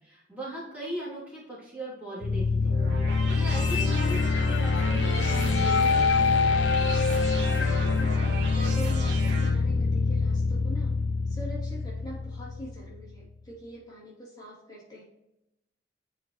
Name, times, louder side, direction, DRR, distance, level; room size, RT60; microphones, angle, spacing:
voice 1, 0.0-2.7 3.3-6.3, right 1 dB, 10° right, -10 dB, 2.9 m, -39 dB
sound 1, 2.2-13.1, left 4 dB, 85° left, 0.5 m, -25 dB
sound 2, 2.6-9.5, right 2 dB, 75° right, 1.6 m, -37 dB
voice 2, 7.6-10.9 11.3-15.0, equal, 25° left, -7 dB, 2.9 m, -43 dB
9.6 x 5.2 x 3.1 m, 0.89 s
head